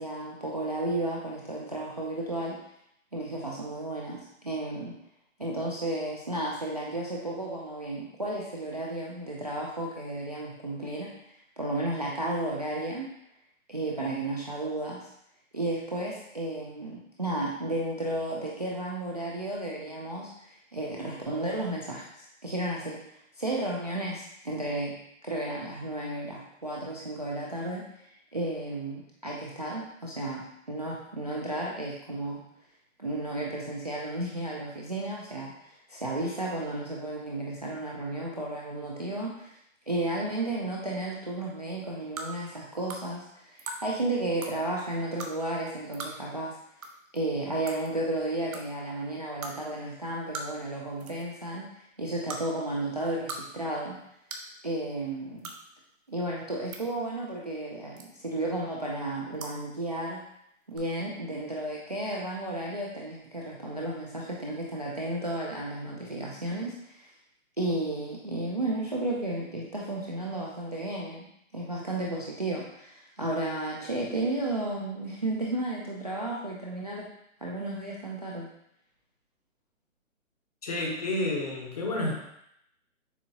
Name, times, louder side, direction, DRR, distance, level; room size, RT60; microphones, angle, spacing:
voice 1, 0.0-2.6 3.1-5.0 5.4-11.1 11.6-13.1 13.7-15.1 15.5-23.0 23.4-25.0 25.2-27.8 28.3-32.4 33.0-39.5 39.9-46.5 47.1-51.7 52.0-54.0 54.6-55.5 56.1-60.2 60.7-67.1 67.6-71.3 71.5-77.0 77.4-78.5, right 1 dB, 30° right, -4 dB, 0.4 m, -33 dB
sound 1, 42.2-42.3 42.9-43.0 43.6-43.8 44.4-44.5 45.2-45.3 45.9-46.1 46.8-46.9 47.2-47.3 47.7-47.9 48.5-48.6 49.4-49.5 50.3-50.6 51.0-51.3 52.2-52.4 53.0-53.4 53.7-53.8 54.3-54.5 55.4-55.6 56.4-56.8 58.0-58.3 59.3-59.5 60.7-60.8, right 3 dB, 85° right, 0.9 m, -38 dB
voice 2, 80.6-82.1, left 1 dB, 30° left, 0 dB, 0.7 m, -30 dB
6.8 x 2.5 x 2.7 m, 0.75 s
hypercardioid pair, 155°, 41 cm